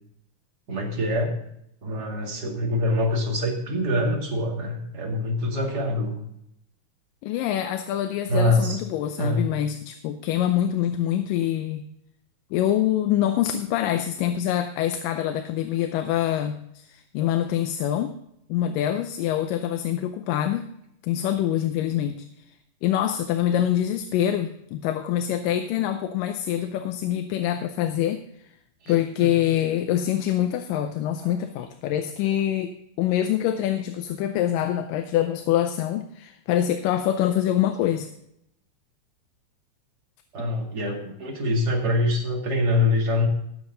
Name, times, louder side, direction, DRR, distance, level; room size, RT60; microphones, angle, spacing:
voice 1, 0.7-1.4 1.8-6.2 8.3-8.8 9.2-9.5 28.8-29.3 31.2-31.4 40.3-43.3, left 1 dB, 30° right, -1 dB, 2.5 m, -25 dB
voice 2, 7.2-11.9 12.5-18.1 18.5-20.7 21.0-22.3 22.8-28.2 28.9-32.7 33.0-38.1, left 11 dB, 85° left, 8 dB, 2.3 m, -25 dB
18.5 x 7.2 x 3.9 m, 0.76 s
omnidirectional pair, 3.8 m